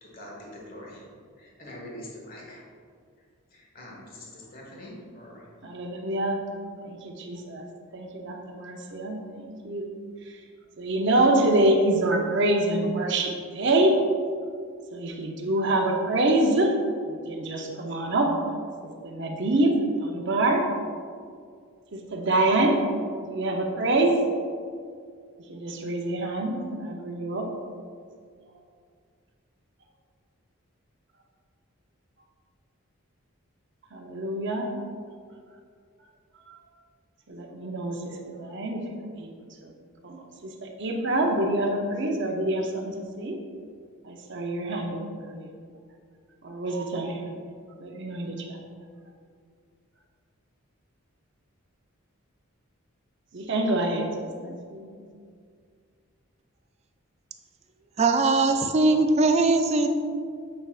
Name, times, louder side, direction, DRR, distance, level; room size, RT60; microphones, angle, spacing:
voice 1, 0.0-1.0 1.4-2.6 3.5-5.4, left 1 dB, 40° left, -3 dB, 1.4 m, -44 dB
voice 2, 5.6-6.4 6.8-7.6 7.9-9.9 10.3-10.4 10.8-14.0 14.9-16.7 17.1-18.4 18.8-20.7 21.9-22.8 23.2-24.2 25.5-27.5 33.9-34.7 36.5-36.6 37.3-39.3 39.6-39.7 40.0-43.4 44.0-45.5 46.4-47.4 47.8-48.6 53.3-54.9, right 1 dB, 55° right, 2 dB, 0.7 m, -26 dB
voice 3, 58.0-59.9, right 3 dB, 30° right, 7 dB, 0.3 m, -20 dB
7.7 x 5.7 x 2.4 m, 2.2 s
head